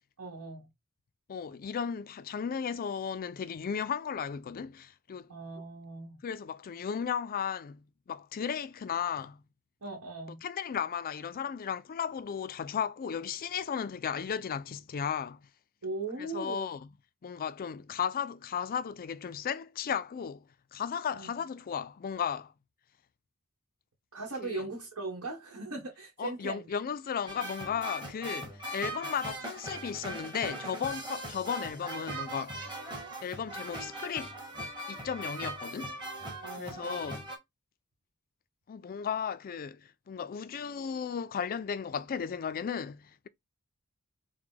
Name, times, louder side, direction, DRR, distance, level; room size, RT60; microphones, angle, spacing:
voice 1, 0.2-0.7 5.3-6.2 9.8-10.4 15.8-16.7 21.1-21.3 24.1-26.7 36.4-37.1, right 3 dB, 75° right, 1.2 m, -39 dB
voice 2, 1.3-5.3 6.2-9.4 10.4-15.5 16.2-16.9 17.2-22.5 24.4-24.6 26.2-32.7 33.2-34.3 34.9-36.0 36.5-37.3 38.7-43.3, left 7 dB, 40° left, 0.4 m, -35 dB
sound 1, 27.3-37.4, right 1 dB, 20° right, 1.3 m, -40 dB
4.7 x 2.1 x 3.8 m
head